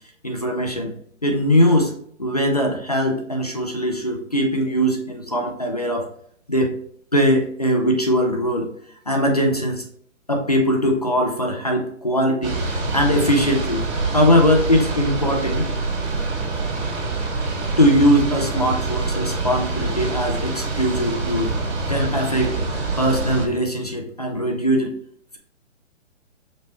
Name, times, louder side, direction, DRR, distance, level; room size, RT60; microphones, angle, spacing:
voice 1, 0.2-0.9 1.2-1.9 2.2-6.1 6.5-6.8 7.1-8.7 9.1-9.8 10.3-12.6 12.9-13.8 14.1-15.7 17.8-21.5 21.9-22.5 23.0-24.9, equal, 35° left, 3 dB, 0.4 m, -20 dB
sound 1, 12.4-23.5, right 3 dB, 60° right, 1.9 m, -25 dB
5.2 x 3.0 x 3.2 m, 0.62 s
hypercardioid pair, 175°, 38 cm